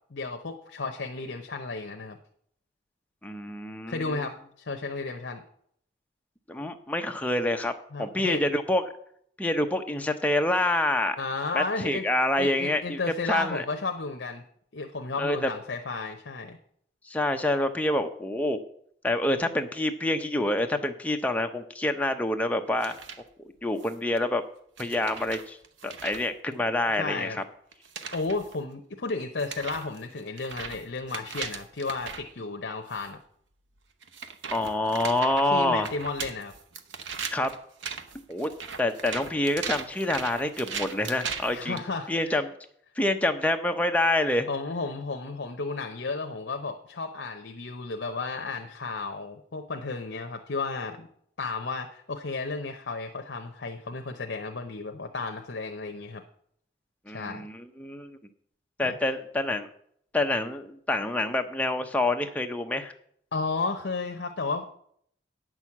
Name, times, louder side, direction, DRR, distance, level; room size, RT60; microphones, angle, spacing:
voice 1, 0.1-2.2 3.9-5.4 7.9-8.4 11.2-12.1 12.4-14.4 14.7-16.6 27.0-27.4 28.1-33.2 35.5-36.5 41.5-42.4 44.5-51.1 51.4-56.2 57.1-57.5 58.8-59.0 63.3-64.8, left 3 dB, 65° left, 5 dB, 0.8 m, -33 dB
voice 2, 3.2-4.3 6.5-7.7 8.0-8.8 9.4-11.2 11.5-13.0 13.3-13.6 15.2-15.5 17.0-18.6 19.0-23.0 23.6-24.4 24.8-25.6 25.8-27.4 34.5-35.9 37.3-37.5 38.3-38.5 38.8-41.8 42.1-42.4 43.0-44.5 57.1-58.2 58.8-59.7 60.1-62.9, left 1 dB, 10° left, 5 dB, 0.7 m, -27 dB
sound 1, 22.8-23.2 23.8-24.2 24.8-26.3 27.7-28.6 29.1-29.2 29.4-32.3 32.9-33.1 34.0-41.8, right 6 dB, 80° right, 0.9 m, -38 dB
9.1 x 6.2 x 7.2 m, 0.66 s
head